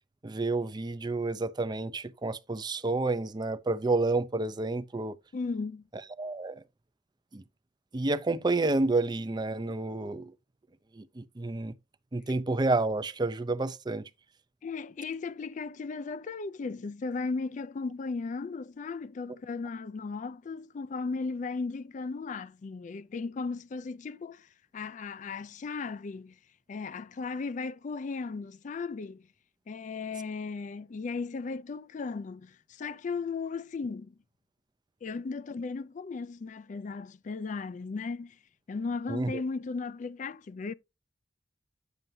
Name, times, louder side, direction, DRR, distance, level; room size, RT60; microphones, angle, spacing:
voice 1, 0.2-5.2 6.2-6.6 7.3-7.4 7.9-10.3 11.0-11.7 12.1-14.0 39.1-39.4, right 2 dB, 25° right, 0.5 m, -29 dB
voice 2, 5.3-5.8 14.6-26.3 26.7-29.2 29.7-34.1 35.0-38.4 38.7-40.7, left 4 dB, 45° left, 0.4 m, -36 dB
9.0 x 6.5 x 2.7 m
head